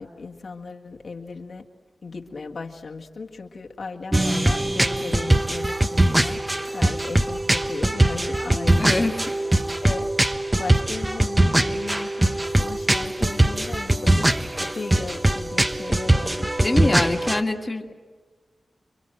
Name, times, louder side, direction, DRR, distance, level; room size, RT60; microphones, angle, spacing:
voice 1, 0.0-1.6 2.0-6.4 6.7-9.1 9.8-14.3 14.6-17.4 17.9-18.0, left 4 dB, 65° left, 1 dB, 1.8 m, -36 dB
sound 1, 4.1-17.4, right 1 dB, 20° right, 1.0 m, -22 dB
voice 2, 8.8-9.1 16.6-17.9, left 2 dB, 25° left, 3 dB, 1.8 m, -24 dB
29.0 x 23.0 x 7.8 m, 1.4 s
wide cardioid pair, 80°, 0 cm